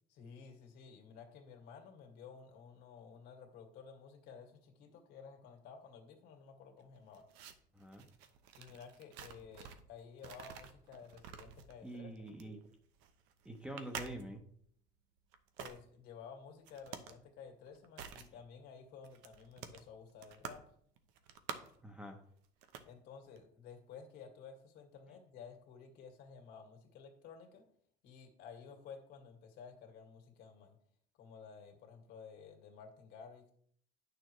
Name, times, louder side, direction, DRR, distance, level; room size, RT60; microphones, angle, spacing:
voice 1, 0.1-7.3 8.6-12.3 15.6-20.8 22.9-27.6 28.0-30.8 31.2-33.5, left 6 dB, 65° left, 3 dB, 2.0 m, -54 dB
eating chips round can opening reverse shuffle, 6.8-9.9 10.2-14.6 15.3-15.8 16.7-17.2 17.5-18.3 18.6-18.7 19.0-20.7 21.0-21.9 22.4-22.9 23.2-23.4, right 8 dB, 90° right, 0.9 m, -49 dB
voice 2, 7.7-8.0 11.8-12.7 13.4-14.4 21.8-22.2, right 1 dB, 5° right, 4 dB, 0.9 m, -46 dB
9.6 x 6.6 x 3.2 m, 0.63 s
cardioid pair, 145°, 18 cm